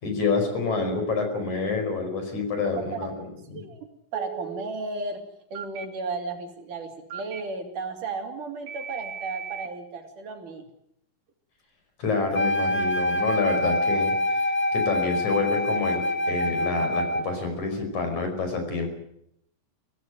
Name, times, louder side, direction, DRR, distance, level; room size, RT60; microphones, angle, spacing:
voice 1, 0.0-3.6 12.0-18.9, left 4 dB, 55° left, 5 dB, 6.4 m, -28 dB
Telephone, 0.7-1.2 4.2-4.7 5.6-5.9 7.1-7.4 8.7-9.7, right 9 dB, 80° right, 3.2 m, -37 dB
voice 2, 3.5-5.2 5.5-10.7, right 3 dB, 60° right, 5 dB, 4.4 m, -34 dB
Wind instrument woodwind instrument, 12.3-17.4, left 1 dB, 30° left, 1.2 m, -25 dB
24.5 x 16.5 x 9.4 m, 0.76 s
omnidirectional pair, 4.1 m